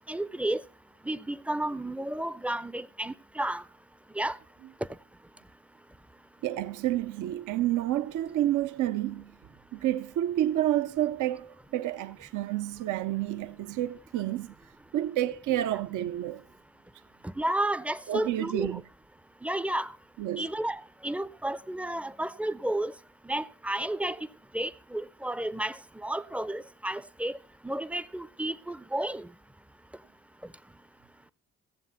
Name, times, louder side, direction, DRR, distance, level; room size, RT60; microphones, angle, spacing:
voice 1, 0.1-0.6 1.0-3.6 4.2-4.4 17.2-18.8 19.4-19.9 20.4-22.9 23.2-24.3 24.5-27.4 27.6-29.3, right 1 dB, 5° right, 0.5 m, -32 dB
voice 2, 6.4-9.3 9.7-14.5 14.9-16.4 18.1-18.8 20.2-20.5, right 13 dB, 60° right, 0.6 m, -29 dB
15.5 x 7.4 x 5.6 m
supercardioid pair, 70°, 34 cm